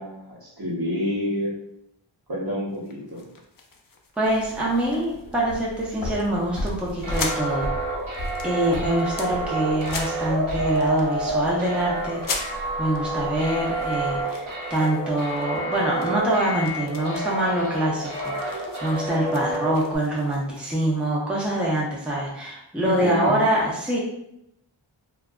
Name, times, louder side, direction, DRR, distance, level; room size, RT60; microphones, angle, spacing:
voice 1, 0.0-1.5 2.3-3.3 22.8-23.4, left 1 dB, 45° right, -5 dB, 0.9 m, -28 dB
sound 1, 2.7-5.2 5.5-5.8 6.2-6.3 6.6-7.5 7.9-9.3 9.8-10.4 10.7-11.6 12.2-13.0 13.5-15.7 16.0-21.1, left 4 dB, 45° left, 0.4 m, -39 dB
voice 2, 4.2-7.7 8.4-12.5 12.8-14.4 14.7-24.0, right 1 dB, ahead, -5 dB, 0.6 m, -25 dB
sound 2, 4.3-14.2, left 1 dB, 60° left, 0.8 m, -37 dB
sound 3, 7.0-20.0, right 2 dB, 75° right, 0.8 m, -29 dB
2.6 x 2.3 x 2.3 m, 0.77 s
wide cardioid pair, 50°, 49 cm